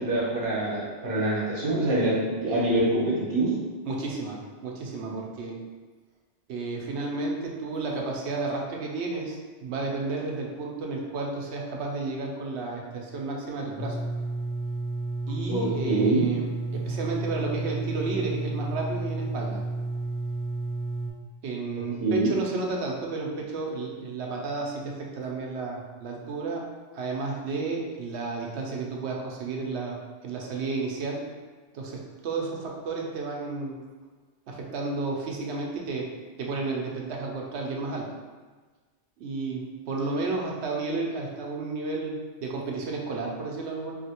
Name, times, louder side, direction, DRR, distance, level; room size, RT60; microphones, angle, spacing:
voice 1, 0.0-3.5 15.5-16.2 21.7-22.3, right 2 dB, 55° right, -7 dB, 1.1 m, -25 dB
voice 2, 3.8-5.6 6.5-14.0 15.3-19.6 21.4-26.7 26.9-31.3 31.7-33.8 34.5-36.1 36.4-38.1 39.2-43.9, right 3 dB, 75° right, -1 dB, 0.9 m, -32 dB
sound 1, 13.8-21.1, right 2 dB, 30° left, 1.0 m, -31 dB
3.0 x 2.7 x 2.8 m, 1.4 s
omnidirectional pair, 1.1 m